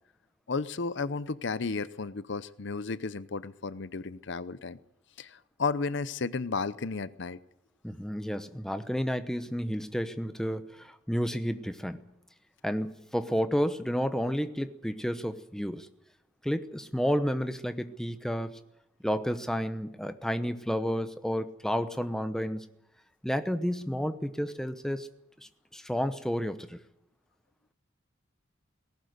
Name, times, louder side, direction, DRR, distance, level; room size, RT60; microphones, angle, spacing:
voice 1, 0.5-4.8 5.2-7.4, left 4 dB, 60° left, 16 dB, 0.7 m, -33 dB
voice 2, 7.8-12.0 12.6-15.9 16.4-18.5 19.0-22.6 23.2-25.1 25.7-26.8, equal, 5° left, 9 dB, 0.9 m, -31 dB
19.0 x 17.5 x 8.0 m, 0.81 s
head